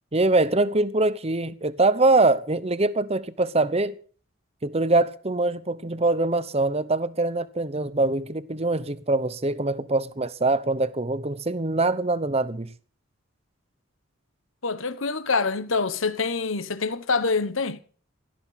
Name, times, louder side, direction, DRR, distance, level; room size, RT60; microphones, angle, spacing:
voice 1, 0.1-4.0 4.6-12.7, right 2 dB, 30° right, 0.9 m, -23 dB
voice 2, 14.6-17.8, left 4 dB, 75° left, 1.3 m, -26 dB
17.5 x 13.5 x 5.8 m
head